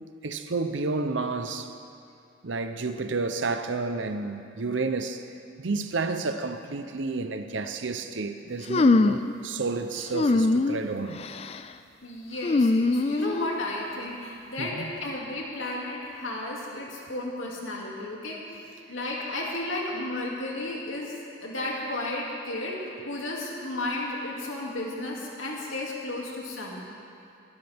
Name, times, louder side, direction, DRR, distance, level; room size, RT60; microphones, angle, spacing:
voice 1, 0.2-1.7 2.4-5.2 5.6-11.2 14.6-14.9, right 3 dB, 75° right, 0.8 m, -30 dB
sound 1, 8.7-9.3 10.1-10.8 11.2-11.6 12.4-13.6, left 2 dB, 30° left, 0.3 m, -22 dB
voice 2, 12.0-18.4 18.9-21.1 21.4-26.8, left 2 dB, 85° left, 2.6 m, -33 dB
21.0 x 12.0 x 3.6 m
head